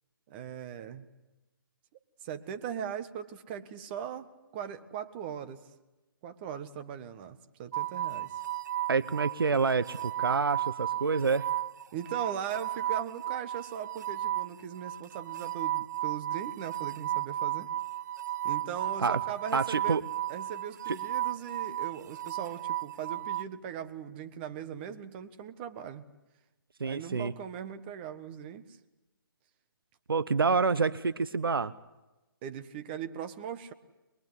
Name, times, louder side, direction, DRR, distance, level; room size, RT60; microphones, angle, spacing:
voice 1, 0.3-1.0 2.2-5.7 6.2-8.4 11.9-17.7 18.4-20.0 20.3-26.1 26.8-28.6 32.4-33.7, right 8 dB, 25° right, 10 dB, 1.5 m, -39 dB
sound 1, 7.7-23.4, right 13 dB, 50° right, 0.9 m, -34 dB
voice 2, 8.9-11.5 19.0-19.2 19.5-20.0 20.9-21.0 26.8-27.3 30.1-31.7, right 4 dB, 75° right, 15 dB, 0.9 m, -27 dB
22.5 x 22.5 x 9.8 m, 1.0 s
figure-of-eight pair, 145°, 12 cm